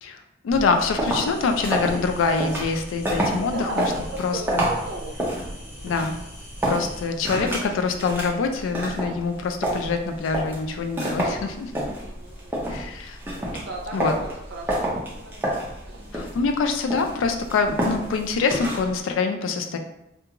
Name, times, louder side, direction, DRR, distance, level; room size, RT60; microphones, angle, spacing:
voice 1, 0.0-3.9 4.2-4.7 5.8-6.2 6.7-11.7 12.7-13.2 13.9-14.1 16.1-19.8, left 4 dB, 75° left, 5 dB, 0.3 m, -25 dB
sound 1, 0.5-19.0, right 1 dB, 10° right, 0.5 m, -29 dB
sound 2, 1.1-7.1, equal, 35° left, 1.3 m, -45 dB
voice 2, 3.5-5.9 7.3-7.7 12.0-12.8 13.4-16.3, right 2 dB, 55° right, 0 dB, 0.5 m, -38 dB
2.4 x 2.4 x 2.8 m, 0.85 s
head